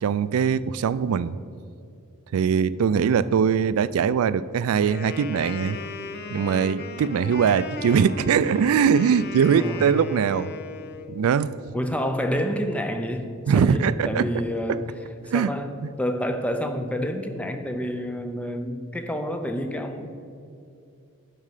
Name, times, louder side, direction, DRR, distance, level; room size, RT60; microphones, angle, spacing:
voice 1, 0.0-1.4 2.3-5.8 6.3-10.5 11.1-11.6 13.5-14.3 15.3-15.5, right 7 dB, 90° right, 16 dB, 0.3 m, -21 dB
voice 2, 3.0-3.3 9.5-9.9 11.7-14.9 15.3-15.7 16.0-20.2, equal, 5° left, 7 dB, 0.6 m, -28 dB
Wind instrument woodwind instrument, 4.8-11.1, left 4 dB, 50° left, 0.6 m, -37 dB
11.0 x 5.5 x 4.9 m, 2.5 s
head